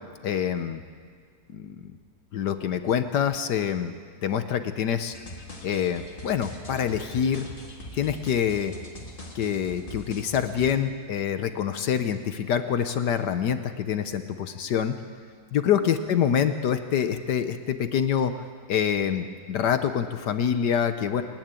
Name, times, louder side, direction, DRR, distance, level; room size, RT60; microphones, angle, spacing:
voice 1, 0.2-0.8 1.5-1.9 2.3-3.9 4.2-5.1 5.6-7.4 7.9-8.7 9.3-14.9 15.5-18.3 18.7-21.2, left 8 dB, 70° left, 9 dB, 1.4 m, -26 dB
sound 1, 5.1-10.7, left 1 dB, 30° left, 2.2 m, -42 dB
28.5 x 10.5 x 9.0 m, 2.1 s
omnidirectional pair, 2.0 m